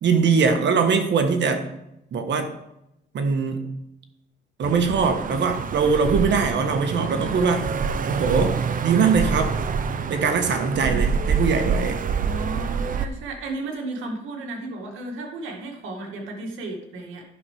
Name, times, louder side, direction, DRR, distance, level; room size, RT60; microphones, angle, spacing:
voice 1, 0.0-1.7 2.1-2.5 3.1-3.7 4.6-7.7 8.0-9.5 10.1-12.0, right 5 dB, 65° right, 6 dB, 1.4 m, -22 dB
sound 1, 4.6-13.1, right 6 dB, 45° right, 0.7 m, -26 dB
voice 2, 6.9-7.5 10.8-11.2 12.2-17.2, right 2 dB, 85° right, 1 dB, 2.1 m, -34 dB
11.0 x 5.7 x 4.9 m, 0.83 s
cardioid pair, 90°, 20 cm